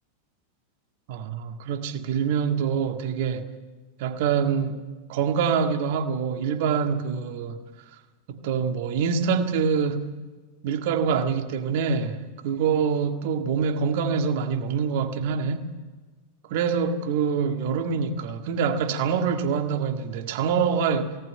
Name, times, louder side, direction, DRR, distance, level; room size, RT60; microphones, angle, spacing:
voice 1, 1.1-3.5 4.0-4.8 5.1-7.6 8.3-10.1 10.6-15.7 16.5-21.2, right 6 dB, 50° right, 1.8 m, -25 dB
19.0 x 17.5 x 9.2 m
figure-of-eight pair, 90°, 0 cm